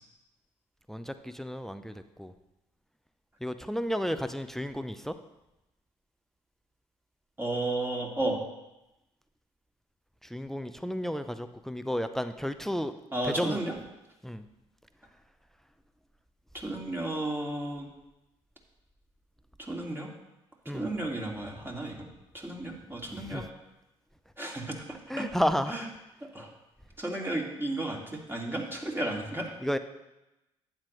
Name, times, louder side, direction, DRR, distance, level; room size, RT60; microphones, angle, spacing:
voice 1, 0.9-1.9 2.2-2.3 3.4-5.1 10.3-12.9 13.4-13.6 14.2-14.4 20.7-20.8 23.3-23.4 25.1-25.7 29.6-29.8, equal, ahead, 11 dB, 0.7 m, -32 dB
voice 2, 7.4-8.4 13.1-13.8 16.5-17.9 19.6-20.1 20.7-22.1 22.3-23.4 24.4-24.8 25.2-25.3 25.7-25.9 26.3-26.5 27.0-29.5, right 1 dB, 15° right, -1 dB, 2.4 m, -33 dB
11.5 x 9.0 x 3.2 m, 0.95 s
hypercardioid pair, 50°, 15 cm